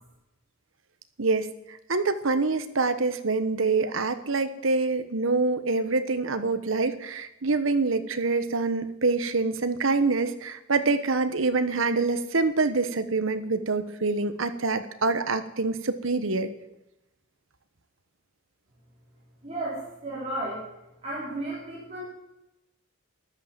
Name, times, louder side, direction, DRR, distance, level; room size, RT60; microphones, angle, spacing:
voice 1, 1.9-16.5, right 3 dB, 75° right, 11 dB, 1.1 m, -25 dB
voice 2, 19.4-20.7 21.0-22.0, right 1 dB, 30° right, -9 dB, 4.7 m, -33 dB
13.5 x 11.5 x 7.5 m, 0.91 s
head